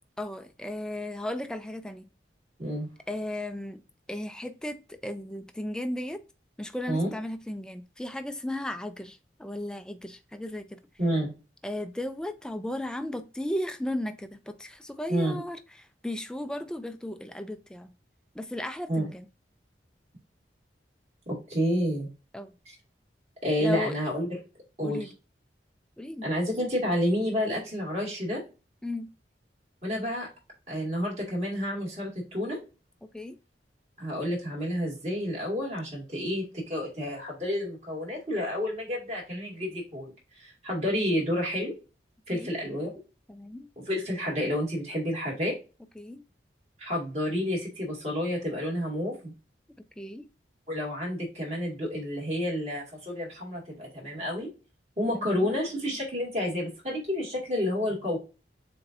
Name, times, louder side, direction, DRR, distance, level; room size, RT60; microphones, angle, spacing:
voice 1, 0.2-2.1 3.1-3.8 4.1-6.2 6.6-10.8 11.6-17.9 18.3-19.3 22.3-22.5 23.6-24.0 24.8-25.1 26.0-26.3 28.8-29.1 33.0-33.4 42.3-42.5 43.3-43.7 46.0-46.2 50.0-50.3 55.1-55.5, left 1 dB, 5° left, 0.3 m, -35 dB
voice 2, 11.0-11.3 15.1-15.4 18.9-19.1 21.3-22.1 23.4-24.4 24.8-25.1 26.2-28.4 29.8-30.3 30.7-32.6 34.0-40.1 40.4-41.7 42.3-42.9 43.8-45.5 46.8-49.3 50.7-54.5 55.0-58.2, equal, 40° right, 2.3 m, -30 dB
7.0 x 2.6 x 2.6 m
head